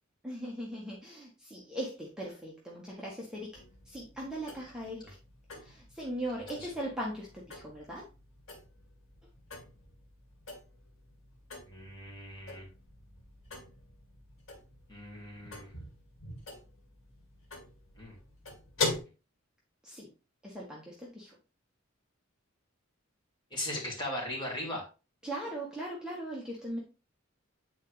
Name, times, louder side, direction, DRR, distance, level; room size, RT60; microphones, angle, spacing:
voice 1, 0.2-3.5 3.9-5.2 5.6-8.1 19.8-20.1 20.4-21.3 25.2-26.8, right 1 dB, 5° right, -5 dB, 1.3 m, -39 dB
sound 1, 3.5-19.0, left 3 dB, 75° left, 2.0 m, -43 dB
voice 2, 11.7-12.7 14.9-15.7 18.0-18.2 23.5-24.8, left 1 dB, 25° left, -2 dB, 2.8 m, -38 dB
8.4 x 4.5 x 3.3 m, 0.31 s
head